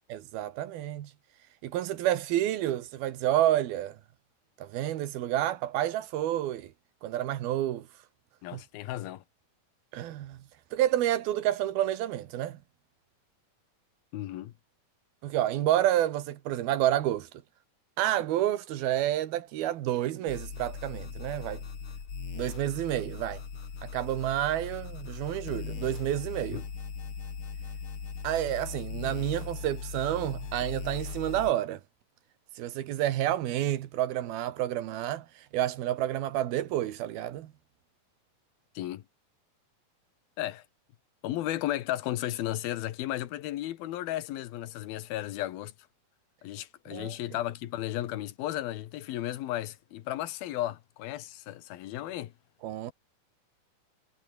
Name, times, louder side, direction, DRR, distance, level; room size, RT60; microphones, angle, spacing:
voice 1, 0.1-1.1 1.6-4.0 4.6-6.7 7.0-7.9 8.5-8.6 9.9-10.4 10.7-12.6 15.2-17.3 18.0-21.6 22.3-23.4 23.8-26.6 28.2-31.8 32.6-37.5 46.9-47.2 52.6-52.9, right 13 dB, 85° right, 3.4 m, -29 dB
voice 2, 8.4-9.2 14.1-14.5 26.5-26.6 38.8-39.0 40.4-40.6 41.2-45.7 46.4-52.3, left 14 dB, 80° left, 3.1 m, -34 dB
sound 1, 20.3-31.5, left 6 dB, 40° left, 3.2 m, -39 dB
omnidirectional pair, 4.2 m